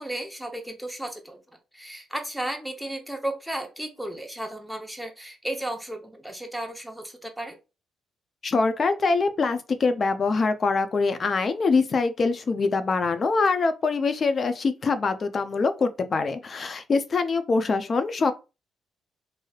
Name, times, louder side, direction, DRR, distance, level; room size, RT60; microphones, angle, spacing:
voice 1, 0.0-7.6, right 1 dB, ahead, 0.7 m, -34 dB
voice 2, 8.4-18.3, left 4 dB, 40° left, 0.5 m, -24 dB
3.2 x 2.6 x 2.3 m
cardioid pair, 90°, 0 cm